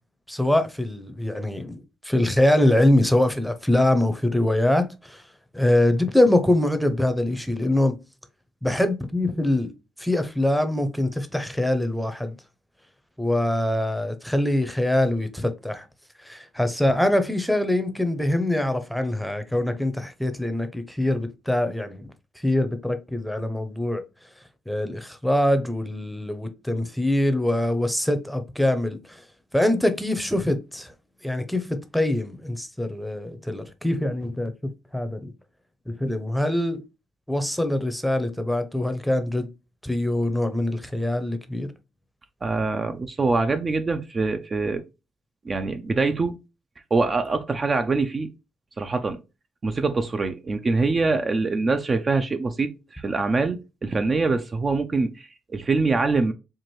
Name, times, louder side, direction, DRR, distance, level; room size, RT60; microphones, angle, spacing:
voice 1, 0.3-5.2 5.5-8.0 8.6-9.7 10.0-12.3 13.2-15.8 16.2-22.1 22.4-24.0 24.7-29.2 29.5-30.9 31.2-34.5 34.9-35.3 35.9-36.8 37.3-39.5 39.8-41.7, left 1 dB, ahead, 0.7 m, -23 dB
voice 2, 42.4-44.8 45.4-46.4 46.9-48.3 48.8-49.2 49.6-56.3, right 3 dB, 35° right, 0.5 m, -24 dB
4.4 x 2.5 x 3.0 m
cardioid pair, 90°, 0 cm